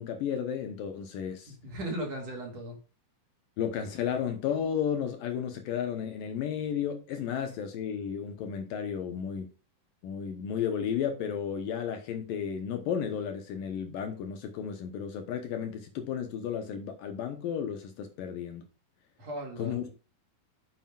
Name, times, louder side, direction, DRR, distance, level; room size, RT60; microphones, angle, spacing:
voice 1, 0.0-1.5 3.6-9.5 10.0-18.6 19.6-19.9, left 8 dB, 70° left, 2.5 m, -33 dB
voice 2, 1.5-2.8 19.2-19.9, right 1 dB, 45° right, 3.0 m, -37 dB
9.9 x 7.6 x 2.4 m
omnidirectional pair, 4.5 m